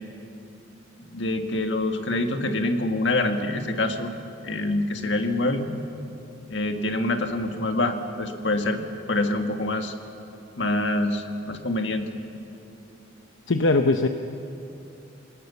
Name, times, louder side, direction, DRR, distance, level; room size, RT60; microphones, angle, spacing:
voice 1, 1.1-4.1 4.4-5.7 6.5-8.8 9.1-9.9 10.6-12.1, left 2 dB, 65° left, 5 dB, 1.8 m, -25 dB
voice 2, 13.5-14.1, left 3 dB, 85° left, 6 dB, 0.8 m, -20 dB
28.5 x 18.5 x 7.1 m, 2.8 s
head